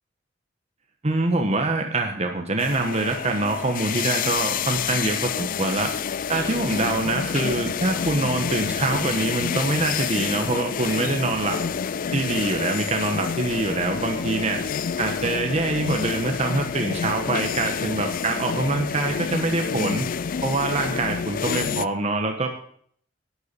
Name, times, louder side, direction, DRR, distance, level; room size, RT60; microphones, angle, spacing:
voice 1, 1.0-5.9 6.3-11.6 12.1-14.7 15.0-20.1 20.4-22.5, right 2 dB, 35° right, 3 dB, 1.1 m, -25 dB
sound 1, 2.6-21.9, left 7 dB, 50° left, 0.4 m, -28 dB
12.5 x 7.1 x 6.7 m, 0.62 s
head